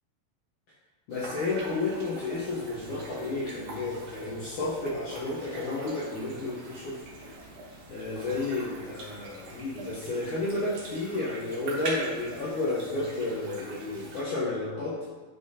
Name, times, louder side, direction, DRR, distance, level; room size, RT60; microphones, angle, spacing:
voice 1, 1.1-7.0 7.9-15.1, left 2 dB, 70° left, -6 dB, 1.9 m, -32 dB
sound 1, 1.1-14.2, right 2 dB, 90° right, 1.3 m, -43 dB
10.0 x 5.5 x 2.8 m, 1.3 s
omnidirectional pair, 4.8 m